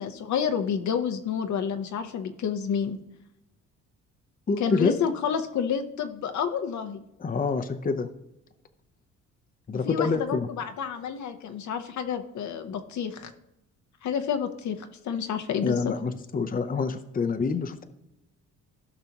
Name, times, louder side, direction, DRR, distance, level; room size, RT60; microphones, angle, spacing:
voice 1, 0.0-3.0 4.6-7.0 9.8-13.3 14.0-15.9, left 7 dB, 70° left, 7 dB, 1.0 m, -29 dB
voice 2, 4.5-5.0 7.2-8.1 9.7-10.5 15.6-17.8, left 4 dB, 30° left, 7 dB, 0.8 m, -27 dB
16.0 x 5.8 x 2.9 m, 0.86 s
cardioid pair, 90°, 30 cm